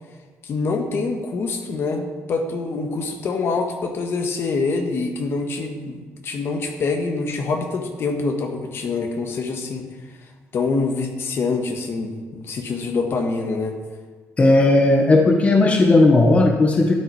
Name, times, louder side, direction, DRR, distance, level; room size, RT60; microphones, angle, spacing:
voice 1, 0.4-9.9 10.5-13.8, left 4 dB, 50° left, 4 dB, 1.5 m, -25 dB
voice 2, 14.4-16.9, left 2 dB, 25° left, 2 dB, 1.1 m, -15 dB
12.5 x 9.0 x 4.8 m, 1.5 s
cardioid pair, 130°, 5 cm